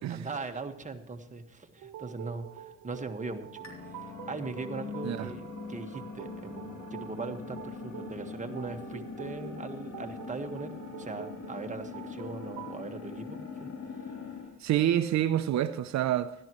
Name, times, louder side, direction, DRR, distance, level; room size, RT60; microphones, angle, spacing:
voice 1, 0.1-13.7 14.0-14.2, right 3 dB, 25° right, 1.5 m, -40 dB
sound 1, 1.8-12.8, right 9 dB, 85° right, 1.0 m, -47 dB
sound 2, 3.6-14.5, left 5 dB, 65° left, 3.6 m, -42 dB
voice 2, 14.6-16.3, right 11 dB, 65° right, 0.6 m, -27 dB
16.0 x 12.5 x 3.1 m
cardioid pair, 90°, 30 cm